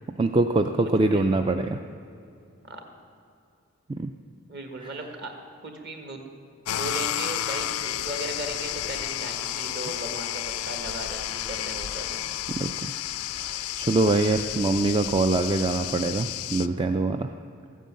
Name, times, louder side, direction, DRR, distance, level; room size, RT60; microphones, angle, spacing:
voice 1, 0.2-1.8 4.0-4.1 12.6-12.7 13.4-17.3, right 2 dB, 20° right, 6 dB, 0.3 m, -24 dB
voice 2, 0.8-1.2 2.6-2.8 4.5-5.3 5.6-6.2 6.7-12.3, right 1 dB, 50° right, 4 dB, 1.7 m, -37 dB
sound 1, 6.7-16.7, left 12 dB, 80° left, 0.4 m, -31 dB
14.5 x 9.3 x 7.6 m, 2.5 s
head